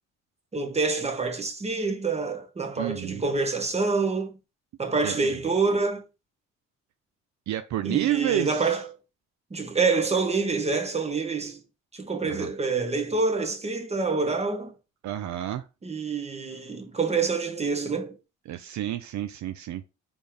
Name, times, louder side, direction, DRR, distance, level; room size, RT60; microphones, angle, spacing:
voice 1, 0.5-4.4 4.8-6.0 7.8-8.8 9.5-11.6 11.9-14.7 15.8-18.2, right 4 dB, 20° right, 1.1 m, -26 dB
voice 2, 2.8-3.2 5.0-5.4 7.5-8.7 12.2-12.5 15.0-15.6 18.5-19.9, right 12 dB, 70° right, 0.5 m, -30 dB
4.3 x 3.6 x 3.3 m
cardioid pair, 90°, 30 cm